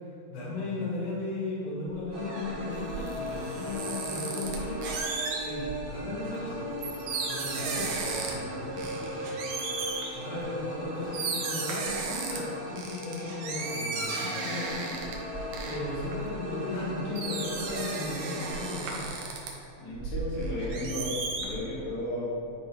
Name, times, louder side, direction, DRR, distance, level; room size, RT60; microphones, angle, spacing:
voice 1, 0.0-4.8 5.3-6.6 7.3-9.2 10.1-15.0 15.6-19.1, left 2 dB, 60° left, -8 dB, 3.4 m, -36 dB
sound 1, 1.9-5.8 6.3-8.5 8.8-10.1 10.8-10.9 11.1-12.4 12.8-16.8 17.1-19.5 19.9-21.5, right 4 dB, 85° right, 1.7 m, -35 dB
sound 2, 2.1-18.8, equal, 60° right, 2.7 m, -38 dB
voice 2, 19.8-22.3, left 1 dB, 90° left, -8 dB, 4.3 m, -34 dB
11.0 x 3.9 x 4.9 m, 2.7 s
omnidirectional pair, 4.8 m